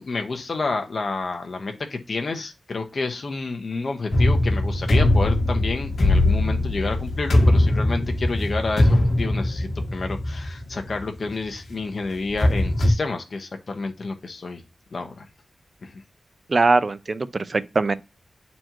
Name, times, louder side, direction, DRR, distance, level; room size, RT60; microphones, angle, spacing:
voice 1, 0.0-14.6 14.9-15.3 15.8-16.0, left 3 dB, 65° left, 1.2 m, -29 dB
sound 1, 4.1-11.1 11.5-11.6 12.2-12.9, left 1 dB, 80° left, 1.6 m, -21 dB
voice 2, 16.5-17.9, right 3 dB, 50° right, 0.5 m, -21 dB
8.7 x 4.3 x 3.0 m
cardioid pair, 65°, 0 cm